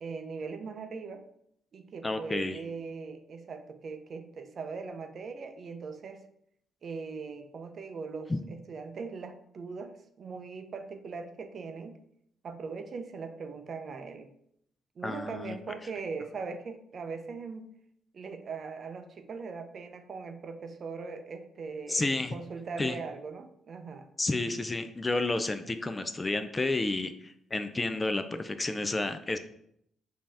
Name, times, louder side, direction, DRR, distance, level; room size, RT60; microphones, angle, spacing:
voice 1, 0.0-1.2 1.7-6.2 6.8-11.9 12.4-14.3 15.0-17.7 18.1-24.1, right 4 dB, 50° right, 7 dB, 0.5 m, -40 dB
voice 2, 2.0-2.6 8.3-8.4 15.0-15.6 21.9-22.3 22.8-23.0 24.2-29.4, left 2 dB, 20° left, 9 dB, 0.4 m, -31 dB
5.2 x 2.8 x 3.4 m, 0.72 s
cardioid pair, 90°, 0 cm